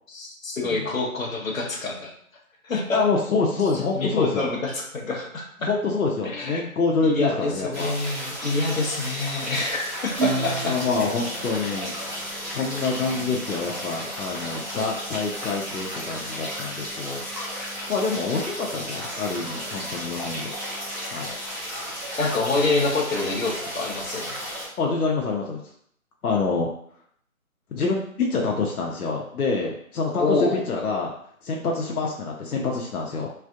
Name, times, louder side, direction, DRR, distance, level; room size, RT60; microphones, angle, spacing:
voice 1, 0.1-2.1 2.6-3.0 3.9-5.7 6.2-6.5 7.0-10.8 22.2-24.3 30.2-30.6, left 3 dB, 65° left, -1 dB, 1.0 m, -26 dB
voice 2, 2.9-4.5 5.6-7.9 10.6-11.9 12.5-17.2 17.9-20.5 21.1-21.4 24.8-25.6 26.2-26.7 27.7-31.1 31.4-33.3, left 4 dB, 90° left, -1 dB, 0.7 m, -26 dB
sound 1, 7.7-24.7, equal, 30° right, 1.1 m, -34 dB
Acoustic guitar / Strum, 10.1-13.1, right 4 dB, 80° right, 0.9 m, -32 dB
3.3 x 2.5 x 2.4 m, 0.66 s
figure-of-eight pair, 175°, 43 cm